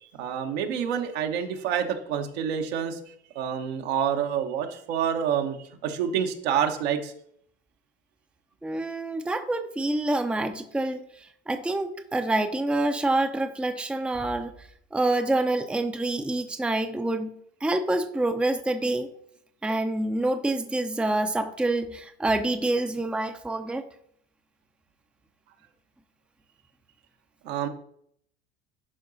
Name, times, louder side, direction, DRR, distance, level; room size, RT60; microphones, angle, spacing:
voice 1, 0.0-3.0 3.3-5.6 5.8-7.1 27.4-27.7, right 8 dB, 65° right, 4 dB, 1.3 m, -27 dB
voice 2, 8.6-17.3 17.6-19.1 19.6-23.9, right 2 dB, 5° right, 6 dB, 0.7 m, -27 dB
11.5 x 4.7 x 4.1 m, 0.67 s
hypercardioid pair, 70°, 34 cm